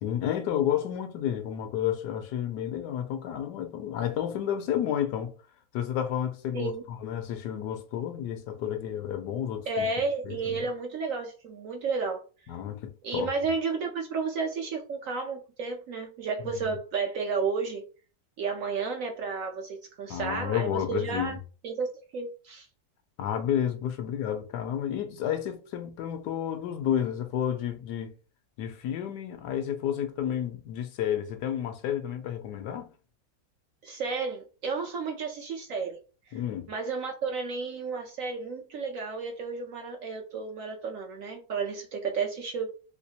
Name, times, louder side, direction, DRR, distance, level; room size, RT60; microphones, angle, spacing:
voice 1, 0.0-5.3 5.7-9.9 10.2-10.6 12.5-13.3 16.4-16.5 20.1-21.4 23.2-28.1 28.6-32.9 36.3-36.7, left 10 dB, 75° left, 1.2 m, -31 dB
voice 2, 9.7-12.2 13.0-17.8 18.4-21.4 21.6-21.9 22.1-22.7 33.8-36.0 36.3-36.4 36.7-42.7, right 4 dB, 65° right, 0.9 m, -32 dB
3.2 x 3.0 x 2.8 m
omnidirectional pair, 1.9 m